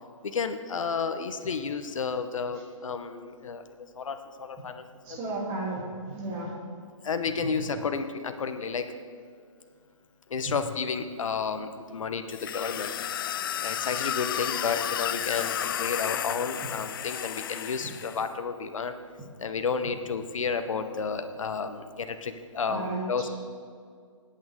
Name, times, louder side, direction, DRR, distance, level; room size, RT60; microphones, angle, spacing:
voice 1, 0.2-3.6 4.0-4.8 5.1-5.2 7.0-8.9 10.3-12.9 13.3-18.9 19.4-23.3, left 5 dB, 70° left, 8 dB, 1.1 m, -31 dB
voice 2, 5.0-5.8 6.1-6.5 22.7-23.1, right 2 dB, 25° right, -3 dB, 3.3 m, -33 dB
sound 1, 12.3-18.3, left 10 dB, 40° left, 0.4 m, -32 dB
20.0 x 8.8 x 3.8 m, 2.2 s
hypercardioid pair, 145°, 17 cm